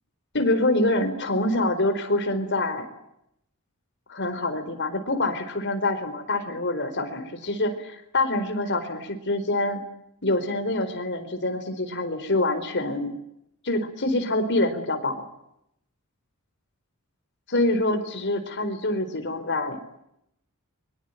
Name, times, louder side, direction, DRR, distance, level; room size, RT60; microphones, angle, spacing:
voice 1, 0.3-2.9 4.1-9.8 10.2-13.1 13.6-15.2 17.5-19.8, left 2 dB, 55° left, 9 dB, 4.4 m, -25 dB
24.0 x 23.5 x 9.2 m, 0.79 s
head